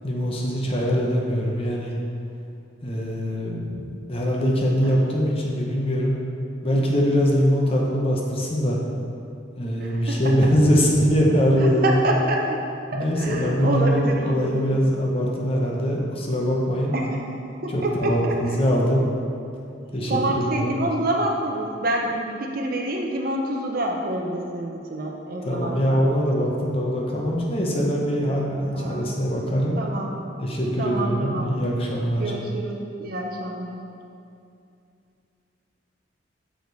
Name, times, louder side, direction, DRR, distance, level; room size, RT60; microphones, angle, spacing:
voice 1, 0.0-1.9 2.8-6.2 6.6-8.8 9.6-12.0 12.9-16.9 17.7-19.1 19.9-20.8 25.5-29.8 30.4-32.3, equal, 30° left, -2 dB, 0.8 m, -22 dB
voice 2, 9.8-10.4 11.8-12.6 12.9-14.7 16.9-17.2 17.6-18.8 20.1-26.0 28.7-29.1 29.8-30.1 30.8-31.5 32.2-33.8, right 1 dB, 50° right, 0 dB, 0.6 m, -27 dB
6.4 x 4.9 x 4.0 m, 2.5 s
head